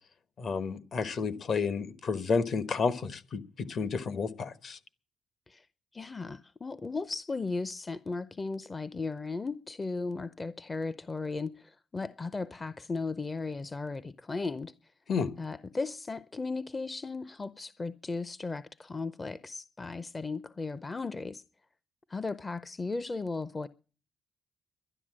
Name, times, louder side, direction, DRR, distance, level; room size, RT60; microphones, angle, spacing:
voice 1, 0.4-4.8 15.1-15.3, left 5 dB, 55° left, 1.2 m, -31 dB
voice 2, 5.9-14.7 15.4-21.4 22.1-23.7, left 3 dB, 25° left, 0.6 m, -36 dB
12.0 x 10.5 x 7.5 m
cardioid pair, 90°, 0 cm